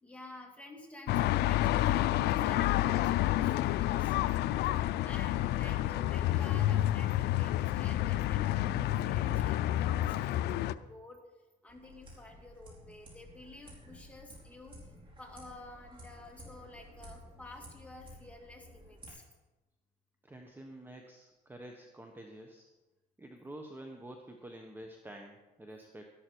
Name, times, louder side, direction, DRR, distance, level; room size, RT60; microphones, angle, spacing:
voice 1, 0.0-4.2 5.0-11.2 11.6-14.8 15.2-19.3, left 2 dB, 10° left, 1 dB, 2.5 m, -51 dB
sound 1, 1.1-10.7, left 14 dB, 75° left, 0.5 m, -29 dB
sound 2, 11.7-19.1, equal, 30° right, 4.9 m, -53 dB
voice 2, 20.2-22.7 23.2-26.0, right 1 dB, 10° right, 3 dB, 1.2 m, -48 dB
13.0 x 11.5 x 4.7 m, 1.1 s
cardioid pair, 110°, 17 cm